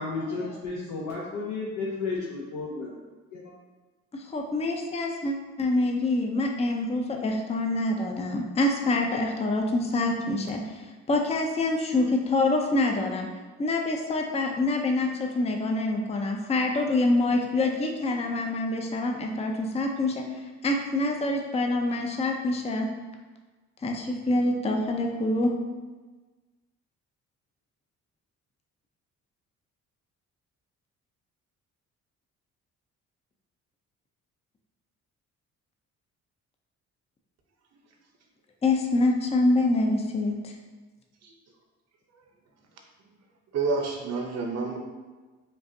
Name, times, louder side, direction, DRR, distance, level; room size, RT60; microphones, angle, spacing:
voice 1, 0.0-2.9 3.3-3.5, left 3 dB, 80° left, -4 dB, 0.7 m, -33 dB
voice 2, 4.1-13.3 13.6-20.2 20.6-22.9 23.8-25.5 38.6-40.5, left 2 dB, 20° left, 2 dB, 0.5 m, -26 dB
voice 3, 43.5-44.8, right 4 dB, 60° right, 2 dB, 0.8 m, -28 dB
5.3 x 2.5 x 2.7 m, 1.3 s
cardioid pair, 90°, 30 cm